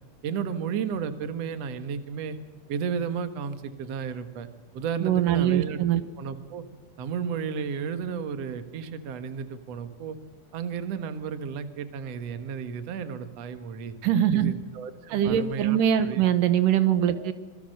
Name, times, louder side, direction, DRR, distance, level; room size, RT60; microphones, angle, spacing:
voice 1, 0.2-2.4 2.7-4.5 4.7-5.8 6.2-6.6 7.0-10.2 10.5-14.0 14.3-16.3 17.1-17.3, right 6 dB, 60° right, 10 dB, 2.3 m, -33 dB
voice 2, 5.0-6.0 14.0-14.5 15.1-17.3, right 10 dB, 85° right, 12 dB, 2.7 m, -22 dB
26.0 x 22.5 x 6.6 m, 1.2 s
omnidirectional pair, 3.7 m